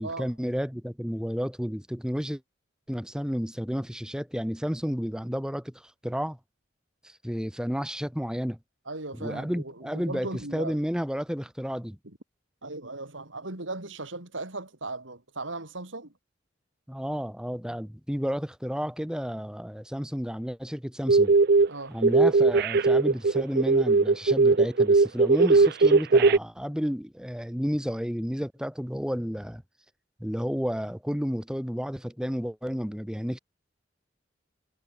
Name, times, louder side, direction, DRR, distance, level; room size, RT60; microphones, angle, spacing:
voice 1, 0.0-2.4 2.9-6.4 7.0-8.6 9.2-12.0 16.9-21.3 21.9-29.6 30.2-33.4, equal, 5° right, 1.5 m, -31 dB
voice 2, 8.9-10.8 12.6-16.1 21.7-22.0, right 2 dB, 90° right, 4.4 m, -37 dB
sound 1, 21.1-21.7 22.0-26.4, right 3 dB, 55° right, 0.6 m, -19 dB
head